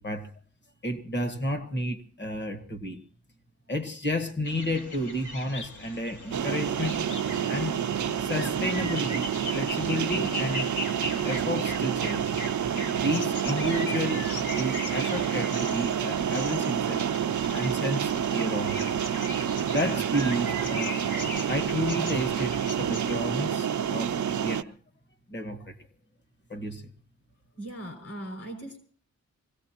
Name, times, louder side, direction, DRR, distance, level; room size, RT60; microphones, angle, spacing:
voice 1, 0.8-3.0 3.7-7.0 7.4-7.8 8.2-9.3 9.5-10.7 11.2-12.4 12.9-14.3 14.5-17.0 17.5-18.8 19.7-21.0 21.5-24.7 25.3-25.7 26.5-26.9, equal, 35° left, 1.6 m, -31 dB
sound 1, 4.4-23.2, left 1 dB, 80° left, 2.5 m, -39 dB
sound 2, 6.3-24.6, right 8 dB, 75° right, 0.6 m, -28 dB
voice 2, 27.6-28.8, right 1 dB, 55° left, 6.2 m, -39 dB
24.5 x 17.5 x 3.0 m
wide cardioid pair, 165°, 30 cm